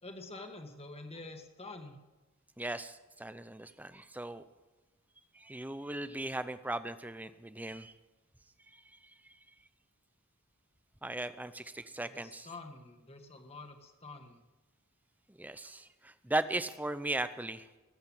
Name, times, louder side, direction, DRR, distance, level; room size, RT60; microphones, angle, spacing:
voice 1, 0.0-2.0 12.1-14.4, left 2 dB, 25° left, 5 dB, 1.6 m, -47 dB
voice 2, 2.6-4.4 5.3-7.9 11.0-12.5 15.3-17.7, right 1 dB, 5° right, 12 dB, 0.6 m, -37 dB
20.0 x 8.1 x 7.3 m, 1.2 s
head